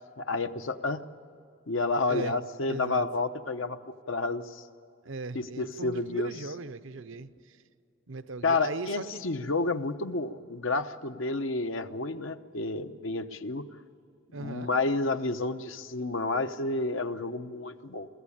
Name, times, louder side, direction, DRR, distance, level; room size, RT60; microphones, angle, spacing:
voice 1, 0.2-1.0 1.7-3.8 4.1-4.6 5.3-6.3 8.4-13.7 14.4-18.1, left 3 dB, 80° left, 9 dB, 0.9 m, -30 dB
voice 2, 2.7-3.1 5.0-7.6 8.1-9.2 14.3-14.7, right 3 dB, 80° right, 13 dB, 0.8 m, -38 dB
23.5 x 15.5 x 8.6 m, 2.6 s
head